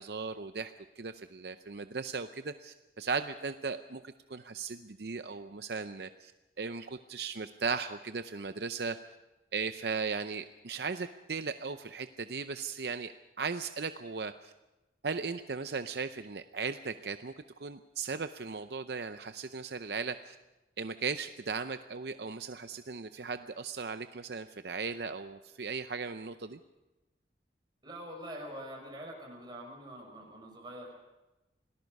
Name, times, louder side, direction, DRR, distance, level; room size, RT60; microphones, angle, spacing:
voice 1, 0.0-6.3 6.6-9.0 9.5-14.5 15.0-17.3 17.6-20.4 20.8-26.6, right 5 dB, 65° right, 9 dB, 0.6 m, -37 dB
voice 2, 27.8-30.9, equal, 25° right, 1 dB, 5.7 m, -44 dB
27.5 x 18.5 x 5.4 m, 1.0 s
head